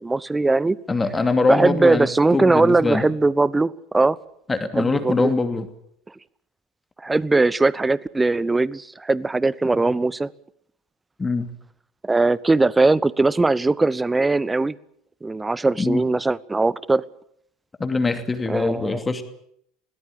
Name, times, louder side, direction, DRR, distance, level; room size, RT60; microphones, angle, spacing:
voice 1, 0.0-0.8 1.5-4.2 4.8-5.3 7.0-10.3 12.0-14.8 15.2-17.0 18.5-19.0, right 3 dB, 15° right, 22 dB, 0.8 m, -20 dB
voice 2, 0.9-2.1 2.3-3.0 4.5-5.7 11.2-11.5 15.8-16.0 17.8-19.2, left 3 dB, 15° left, 8 dB, 2.7 m, -22 dB
21.5 x 18.5 x 8.6 m, 0.70 s
figure-of-eight pair, 70°, 0 cm